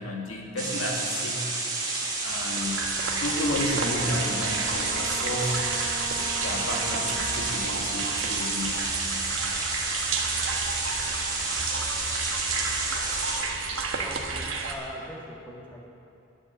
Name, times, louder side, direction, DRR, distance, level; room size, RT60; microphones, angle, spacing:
voice 1, 0.0-1.4 2.2-2.9 3.2-5.6 6.4-8.9, left 1 dB, 80° left, 0 dB, 1.9 m, -32 dB
sound 1, 0.6-13.4, right 3 dB, 20° right, 2.2 m, -30 dB
sound 2, 2.1-14.7, right 4 dB, 65° right, 1.2 m, -32 dB
Wind instrument woodwind instrument, 3.7-8.2, right 3 dB, 50° right, 0.7 m, -39 dB
voice 2, 14.0-15.8, equal, 10° left, -2 dB, 1.7 m, -41 dB
11.5 x 7.4 x 8.2 m, 2.6 s
head